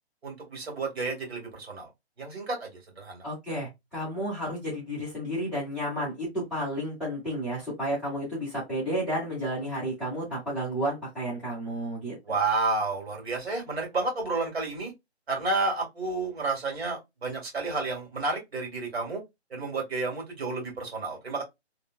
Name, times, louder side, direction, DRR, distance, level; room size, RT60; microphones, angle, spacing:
voice 1, 0.2-1.9 2.2-3.2 12.2-14.9 15.3-19.2 19.5-21.4, right 3 dB, 65° right, 1.8 m, -31 dB
voice 2, 3.2-12.4, equal, 5° right, 1.1 m, -32 dB
3.0 x 2.4 x 2.3 m
hypercardioid pair, 155°, 33 cm